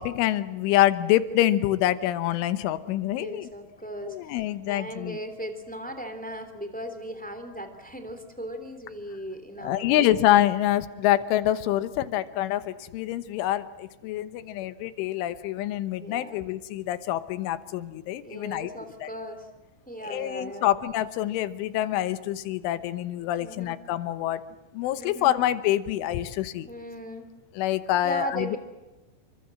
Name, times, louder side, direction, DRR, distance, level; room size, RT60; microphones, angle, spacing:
voice 1, 0.0-3.5 4.1-5.2 9.6-18.7 19.0-19.1 20.0-24.4 24.7-26.7 27.6-28.6, left 13 dB, 85° left, 12 dB, 3.6 m, -26 dB
voice 2, 2.9-4.4 4.7-10.1 16.0-16.4 18.2-19.5 19.8-20.7 23.4-23.7 25.0-25.4 26.7-27.3 28.0-28.6, right 1 dB, 5° left, 8 dB, 1.8 m, -37 dB
29.0 x 24.5 x 7.7 m, 1.1 s
omnidirectional pair, 5.4 m